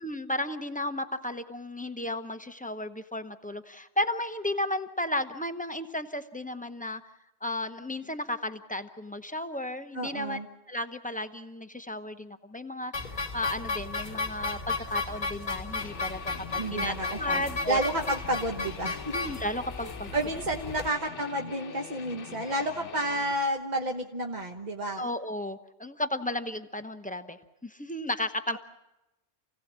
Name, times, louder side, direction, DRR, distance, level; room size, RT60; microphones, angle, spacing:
voice 1, 0.0-7.0 7.4-10.4 10.7-12.9 13.3-17.9 19.1-20.3 22.4-22.5 25.0-28.6, left 1 dB, 10° left, 8 dB, 0.6 m, -34 dB
voice 2, 9.9-10.5 16.6-19.1 19.8-25.1, right 1 dB, 35° right, 2 dB, 1.1 m, -31 dB
sound 1, 12.9-20.9, left 3 dB, 35° left, 1.2 m, -34 dB
Guitar, 15.8-23.4, left 7 dB, 60° left, 1.2 m, -44 dB
28.5 x 17.0 x 7.4 m, 0.97 s
omnidirectional pair, 1.5 m